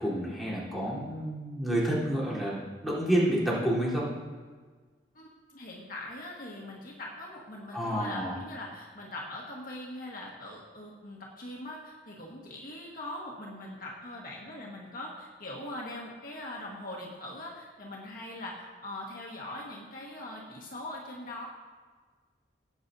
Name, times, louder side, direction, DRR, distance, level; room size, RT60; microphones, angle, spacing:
voice 1, 0.0-2.6 2.8-4.1 7.7-8.3, right 1 dB, ahead, -9 dB, 3.8 m, -29 dB
voice 2, 5.1-21.5, left 1 dB, 55° left, -3 dB, 1.6 m, -41 dB
17.5 x 8.8 x 2.8 m, 1.5 s
head